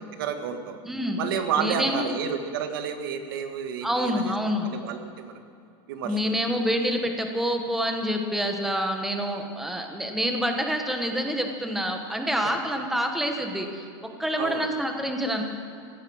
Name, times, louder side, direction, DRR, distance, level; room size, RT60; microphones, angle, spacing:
voice 1, 0.2-0.8 1.2-4.3 4.6-5.4 5.9-6.2 14.4-14.7, right 7 dB, 70° right, 7 dB, 1.7 m, -30 dB
voice 2, 0.8-1.2 1.6-2.1 3.8-4.7 6.0-15.4, equal, ahead, 4 dB, 1.2 m, -27 dB
16.0 x 13.5 x 6.4 m, 2.5 s
supercardioid pair, 175°, 12 cm